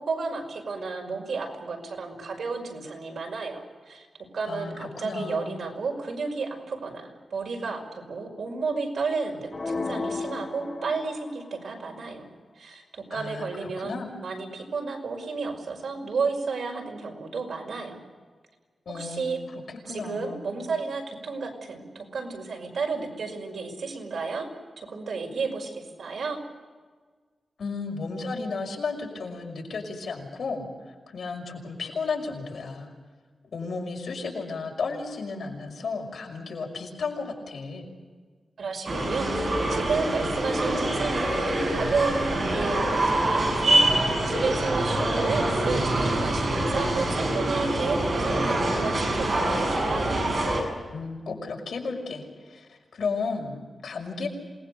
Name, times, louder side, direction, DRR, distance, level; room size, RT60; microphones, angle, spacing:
voice 1, 0.0-4.1 4.3-12.3 12.6-18.0 18.9-19.4 19.9-24.5 24.8-26.4 38.6-50.2, right 4 dB, 75° right, 2 dB, 5.5 m, -32 dB
voice 2, 4.5-5.6 13.1-14.1 18.9-19.2 19.7-20.4 27.6-32.9 33.5-37.8 50.9-54.3, left 4 dB, 75° left, 1 dB, 5.8 m, -33 dB
sound 1, 9.5-11.6, left 3 dB, 35° left, 1.3 m, -33 dB
sound 2, 38.9-50.6, right 1 dB, 45° right, 7.0 m, -25 dB
27.5 x 20.0 x 6.7 m, 1.5 s
wide cardioid pair, 140°, 0 cm